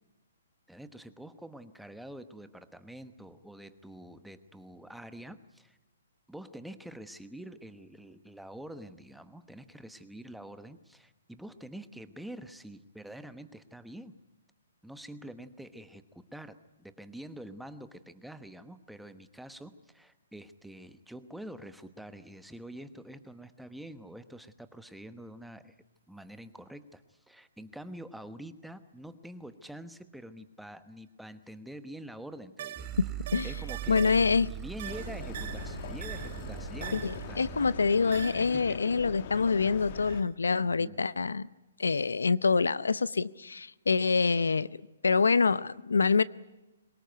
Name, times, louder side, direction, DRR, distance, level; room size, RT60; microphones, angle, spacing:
voice 1, 0.7-5.8 6.3-14.2 14.8-25.7 26.1-32.9 33.4-37.9 38.4-38.8 40.6-41.0, right 1 dB, ahead, 11 dB, 1.1 m, -46 dB
sound 1, 32.6-34.4 34.8-36.5 36.8-37.3 38.1-38.5 39.0-39.3 39.8-40.3, right 12 dB, 50° right, 1.2 m, -43 dB
sound 2, 32.8-38.0, right 13 dB, 20° right, 1.3 m, -40 dB
voice 2, 33.9-34.5 36.9-41.5 41.8-44.7 45.0-46.2, left 4 dB, 90° left, 19 dB, 0.7 m, -26 dB
sound 3, 34.8-40.2, left 9 dB, 50° left, 1.4 m, -42 dB
22.5 x 19.5 x 9.3 m, 1.0 s
hypercardioid pair, 140°, 0 cm